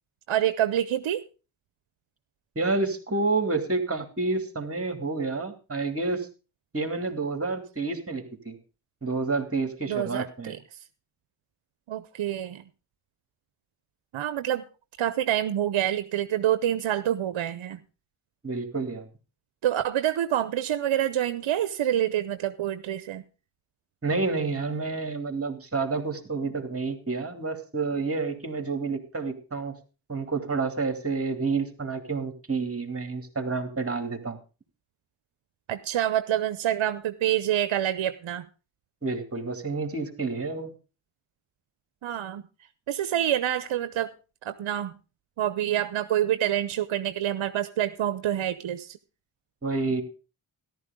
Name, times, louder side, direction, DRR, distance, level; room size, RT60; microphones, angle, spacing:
voice 1, 0.3-1.2 9.9-10.6 11.9-12.6 14.1-14.6 15.0-17.8 19.6-23.2 35.7-38.5 42.0-42.4 42.9-44.1 44.4-45.0 45.4-49.0, right 11 dB, 70° right, 12 dB, 0.8 m, -27 dB
voice 2, 2.6-6.3 6.7-8.6 9.0-10.6 18.4-19.1 24.0-29.8 30.1-34.4 39.0-40.7 49.6-50.0, right 3 dB, 25° right, 6 dB, 2.7 m, -29 dB
13.5 x 12.0 x 3.7 m, 0.33 s
cardioid pair, 55°, 50 cm